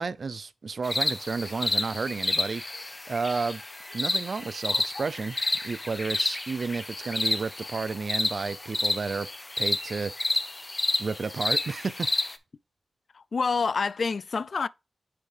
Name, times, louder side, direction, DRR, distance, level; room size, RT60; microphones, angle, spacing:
voice 1, 0.0-3.6 3.9-5.4 5.6-9.3 9.6-10.3 11.0-12.1, right 4 dB, 65° right, 0.4 m, -32 dB
sound 1, 0.8-12.4, left 2 dB, 35° left, 0.8 m, -30 dB
voice 2, 13.1-14.7, left 5 dB, 70° left, 0.3 m, -27 dB
7.7 x 4.5 x 3.3 m
cardioid pair, 45°, 0 cm